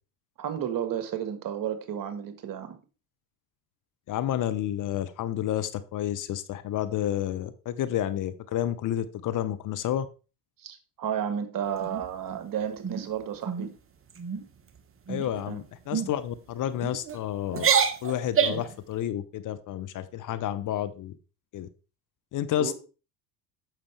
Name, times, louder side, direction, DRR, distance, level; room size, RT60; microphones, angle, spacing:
voice 1, 0.4-2.8 10.6-13.7 15.5-15.6 22.6-22.7, right 9 dB, 40° right, 9 dB, 1.7 m, -32 dB
voice 2, 4.1-10.1 15.1-17.7 18.0-21.1 21.5-21.7 22.3-22.7, left 11 dB, 40° left, 12 dB, 0.8 m, -30 dB
sound 1, 11.8-12.4 12.8-13.1 13.4-13.7 14.1-14.4 15.1-15.4 15.9-16.1 16.8-17.2 17.5-18.7, right 7 dB, 25° right, 1.1 m, -27 dB
9.1 x 6.6 x 3.4 m, 0.33 s
hypercardioid pair, 70°, 50 cm